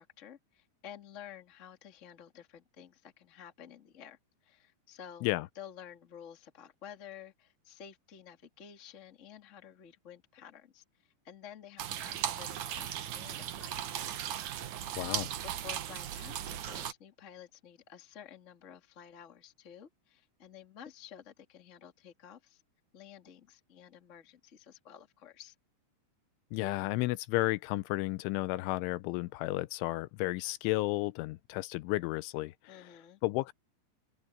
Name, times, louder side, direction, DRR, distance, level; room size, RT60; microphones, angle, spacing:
voice 1, 0.0-5.3 5.5-14.2 15.2-22.6 22.9-25.5 32.7-33.2, left 9 dB, 40° left, 1.1 m, -52 dB
sound 1, 11.8-16.9, right 10 dB, 85° right, 1.7 m, -37 dB
voice 2, 15.0-15.3 26.5-32.9 33.2-33.5, left 19 dB, 90° left, 3.2 m, -33 dB
open air
omnidirectional pair, 5.4 m